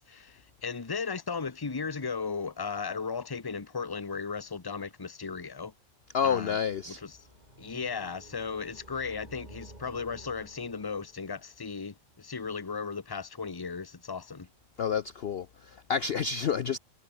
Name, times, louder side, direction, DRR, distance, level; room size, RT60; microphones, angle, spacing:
voice 1, 0.0-5.7 6.2-6.6 6.9-7.2 7.6-14.5, left 5 dB, 20° left, 1.0 m, -36 dB
voice 2, 6.1-7.0 14.8-16.8, left 7 dB, 55° left, 0.8 m, -29 dB
sound 1, 6.9-11.5, right 1 dB, 30° right, 4.5 m, -52 dB
omnidirectional pair, 1.5 m